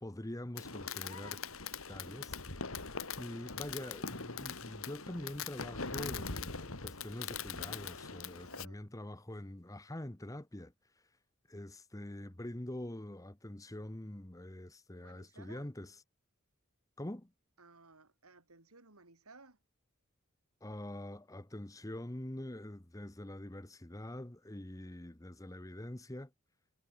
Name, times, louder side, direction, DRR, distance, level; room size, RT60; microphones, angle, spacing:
voice 1, 0.0-1.4 1.9-2.4 3.2-10.7 11.5-16.0 17.0-17.3 20.6-26.3, left 1 dB, 15° left, 1.1 m, -45 dB
Fireworks, 0.6-8.7, left 5 dB, 70° left, 3.0 m, -42 dB
voice 2, 8.4-8.8 14.9-15.7 17.6-19.6, right 3 dB, 85° right, 4.0 m, -59 dB
head